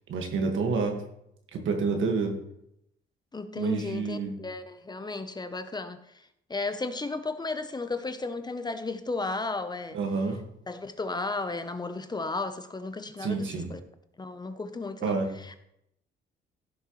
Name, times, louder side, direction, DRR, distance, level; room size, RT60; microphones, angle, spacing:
voice 1, 0.1-1.0 1.5-2.3 3.6-4.4 9.9-10.4 13.2-13.7 15.0-15.3, right 4 dB, 75° right, 4 dB, 1.9 m, -28 dB
voice 2, 3.3-6.0 6.5-10.0 10.7-13.8 14.2-15.5, left 3 dB, 20° left, 9 dB, 0.9 m, -34 dB
15.5 x 6.6 x 3.2 m, 0.78 s
cardioid pair, 90°, 20 cm